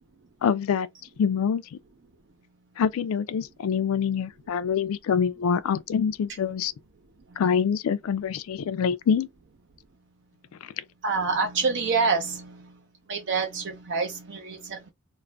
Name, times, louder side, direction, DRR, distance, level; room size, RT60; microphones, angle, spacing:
voice 1, 0.4-0.9 1.2-1.8 2.8-6.7 7.4-9.3 10.6-10.7, left 7 dB, 75° left, 0.3 m, -25 dB
voice 2, 11.0-12.8 13.1-14.9, right 4 dB, 55° right, 0.5 m, -27 dB
2.4 x 2.1 x 3.2 m
head